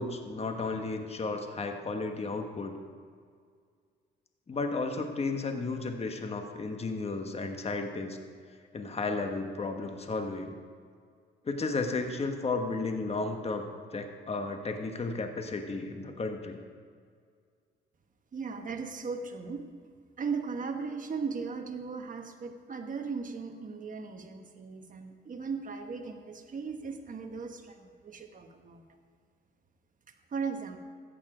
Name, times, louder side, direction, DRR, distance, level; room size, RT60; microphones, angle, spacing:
voice 1, 0.0-2.8 4.5-8.2 8.7-10.5 11.4-13.7 13.9-16.6, left 3 dB, 30° left, 5 dB, 1.3 m, -33 dB
voice 2, 18.3-19.6 20.2-28.9 30.3-30.8, right 5 dB, 40° right, 5 dB, 1.3 m, -37 dB
14.0 x 8.9 x 5.0 m, 2.1 s
cardioid pair, 90°, 20 cm